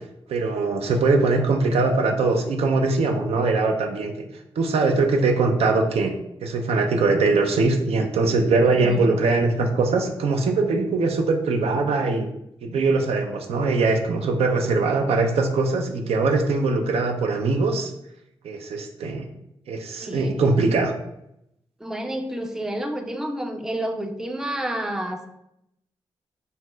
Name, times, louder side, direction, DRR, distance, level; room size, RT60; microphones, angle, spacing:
voice 1, 0.3-4.1 4.6-6.1 6.4-12.3 12.6-17.9 18.4-19.2 19.7-20.9, right 3 dB, 70° right, 4 dB, 0.4 m, -21 dB
voice 2, 8.6-9.1 14.9-15.1 20.0-20.4 21.8-25.3, right 1 dB, 5° right, 5 dB, 0.4 m, -30 dB
4.1 x 2.1 x 2.2 m, 0.80 s
supercardioid pair, 45°, 11 cm